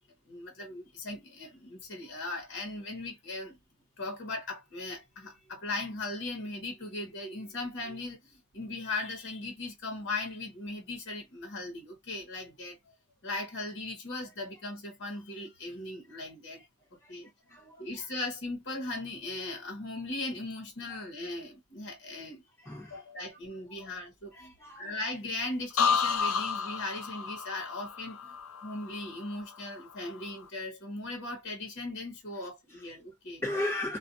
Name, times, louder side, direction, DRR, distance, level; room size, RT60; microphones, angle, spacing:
voice 1, 0.3-3.6 4.0-12.9 13.2-16.6 17.1-17.3 17.8-22.4 22.9-28.4 28.6-33.4, left 2 dB, 55° left, 1.1 m, -38 dB
voice 2, 16.9-18.1 20.9-21.0 22.6-23.0 23.7-24.0 24.3-25.0 32.4-32.9 33.4-34.0, left 1 dB, 10° left, 1.1 m, -38 dB
sound 1, 25.8-29.6 29.9-30.4, left 6 dB, 75° left, 0.5 m, -31 dB
2.5 x 2.3 x 2.5 m
head